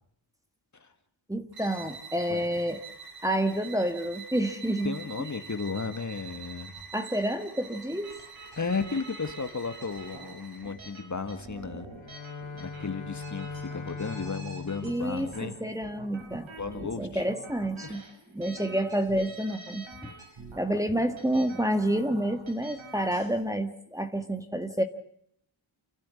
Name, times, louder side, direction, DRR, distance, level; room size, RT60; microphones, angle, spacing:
voice 1, 1.3-2.8 3.2-5.0 6.9-8.2 14.8-16.5 16.8-18.0 18.3-20.1 20.6-24.8, right 1 dB, 5° right, 7 dB, 1.9 m, -29 dB
sound 1, 1.5-10.9, right 5 dB, 45° right, 4.6 m, -46 dB
voice 2, 4.8-6.7 8.6-11.9 12.5-15.6 16.6-17.3 17.8-18.0, left 4 dB, 35° left, 8 dB, 1.9 m, -34 dB
sound 2, 8.0-23.3, right 3 dB, 70° right, 6.8 m, -47 dB
Bowed string instrument, 11.9-16.0, left 4 dB, 65° left, 3.1 m, -41 dB
29.0 x 12.0 x 9.7 m, 0.72 s
wide cardioid pair, 100°, 49 cm